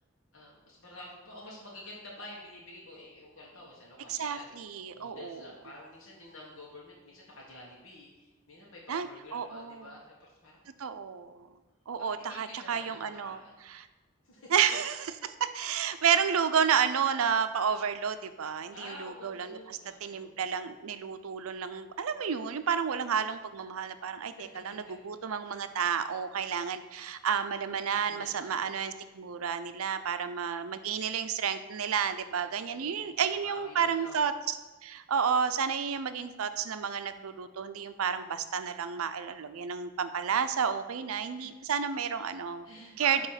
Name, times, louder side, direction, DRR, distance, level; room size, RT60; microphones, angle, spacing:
voice 1, 0.3-4.5 4.9-10.6 12.2-13.6 14.2-14.8 18.7-20.4 24.2-24.9 25.4-25.5 28.1-28.8 32.5-33.1 33.4-34.3 41.3-41.5 42.6-43.3, left 1 dB, 70° left, -4 dB, 1.4 m, -49 dB
voice 2, 4.1-5.5 8.9-9.9 10.8-11.5 11.9-13.4 13.7-13.8 14.5-24.3 24.6-34.6 34.8-42.7 43.0-43.3, right 7 dB, 85° right, 10 dB, 0.5 m, -31 dB
9.0 x 3.0 x 5.7 m, 1.2 s
head